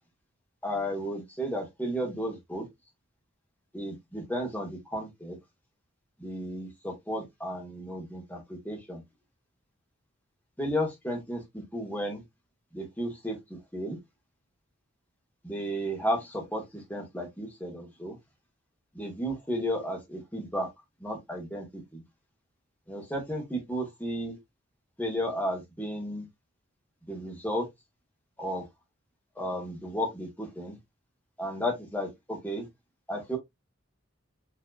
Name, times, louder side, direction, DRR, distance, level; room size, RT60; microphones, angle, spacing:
voice 1, 0.6-2.7 3.7-5.4 6.2-9.0 10.6-12.2 12.7-14.0 15.4-18.2 18.9-20.7 21.0-22.0 22.9-24.4 25.0-26.3 27.1-27.7 28.4-28.7 29.3-30.8 31.4-32.7 33.1-33.4, equal, 10° left, 1.6 m, -33 dB
4.8 x 3.5 x 2.4 m
head